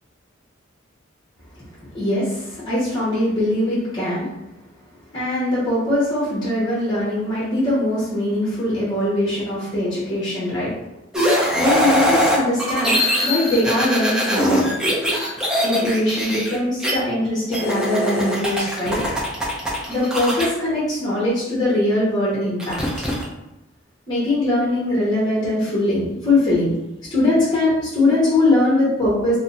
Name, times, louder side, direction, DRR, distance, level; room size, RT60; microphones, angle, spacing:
voice 1, 1.9-4.3 5.1-10.8 11.5-14.7 15.6-19.0 19.9-22.8 24.1-26.7 27.1-29.4, left 1 dB, 20° left, -8 dB, 0.9 m, -21 dB
sound 1, 11.1-16.9 17.5-20.5 22.6-23.2, equal, 5° right, 0.5 m, -21 dB
2.5 x 2.1 x 3.7 m, 0.91 s
head